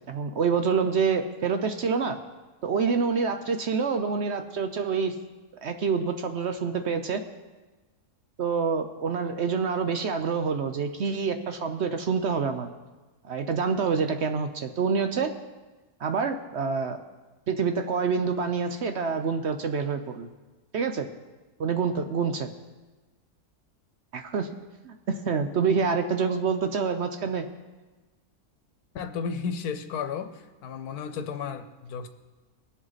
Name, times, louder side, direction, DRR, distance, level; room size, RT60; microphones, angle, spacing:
voice 1, 0.1-2.2 2.6-5.1 5.6-7.2 8.4-12.7 13.2-15.3 16.0-17.0 17.5-20.3 20.7-21.1 21.6-22.5 24.1-24.5 24.8-27.5, right 5 dB, 60° right, 7 dB, 0.8 m, -27 dB
voice 2, 28.9-30.3 30.6-32.1, left 6 dB, 85° left, 9 dB, 1.3 m, -33 dB
21.5 x 7.8 x 4.1 m, 1.2 s
omnidirectional pair, 1.6 m